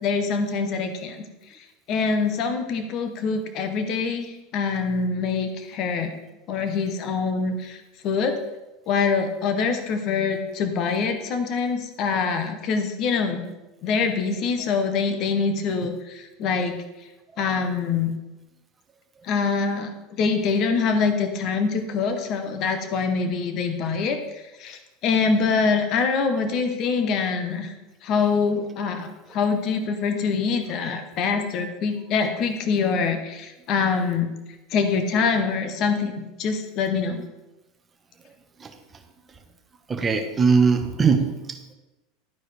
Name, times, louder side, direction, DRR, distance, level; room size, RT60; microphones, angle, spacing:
voice 1, 0.0-1.2 1.9-6.2 6.5-7.8 8.0-8.3 8.9-13.5 13.8-16.8 17.4-18.1 19.2-19.9 20.2-24.2 24.6-27.7 28.0-34.3 34.7-36.1 36.4-37.2, left 5 dB, 45° left, 7 dB, 0.9 m, -24 dB
voice 2, 39.9-41.7, right 5 dB, 20° right, 5 dB, 1.0 m, -21 dB
11.5 x 4.6 x 3.4 m, 1.0 s
supercardioid pair, 130°, 0 cm